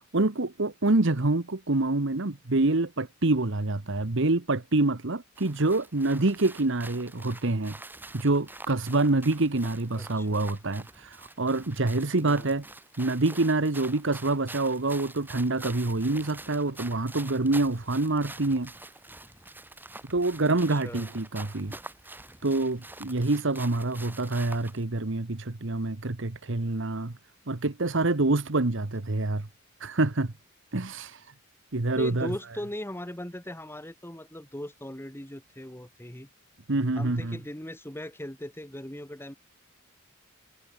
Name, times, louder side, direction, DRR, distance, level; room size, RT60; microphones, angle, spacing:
voice 1, 0.1-7.8 8.1-12.6 13.0-18.7 20.1-21.7 22.4-27.2 27.5-29.5 29.8-30.3 30.7-31.2 31.7-32.3 36.7-37.4, right 2 dB, 60° right, 1.2 m, -26 dB
sound 1, 5.4-24.8, right 2 dB, 10° right, 3.0 m, -46 dB
voice 2, 9.9-10.5 12.2-12.5 20.5-21.1 31.9-36.3 37.0-39.3, left 1 dB, 10° left, 2.2 m, -39 dB
head